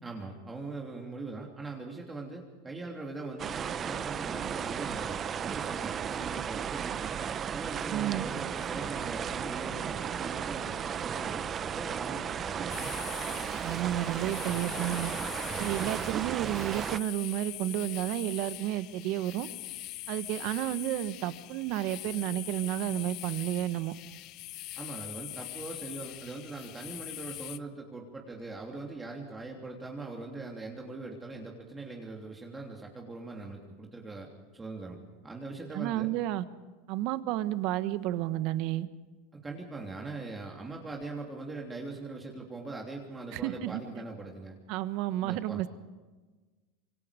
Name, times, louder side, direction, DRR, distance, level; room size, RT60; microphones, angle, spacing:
voice 1, 0.0-7.2 7.5-12.8 15.5-15.7 24.8-34.3 34.5-36.1 39.4-44.6 45.2-45.6, right 3 dB, 15° right, 0 dB, 3.1 m, -41 dB
sound 1, 3.4-17.0, right 8 dB, 30° right, 0.8 m, -35 dB
voice 2, 7.9-8.2 13.6-15.1 15.6-19.5 20.1-23.9 35.7-36.4 36.9-38.9 43.3-43.8 44.7-45.7, right 14 dB, 55° right, 13 dB, 1.3 m, -31 dB
sound 2, 8.4-14.6, left 5 dB, 80° left, 7.3 m, -54 dB
sound 3, 12.7-27.6, left 17 dB, 50° left, 0.9 m, -43 dB
26.5 x 23.5 x 5.2 m, 1.3 s
supercardioid pair, 125°, 0 cm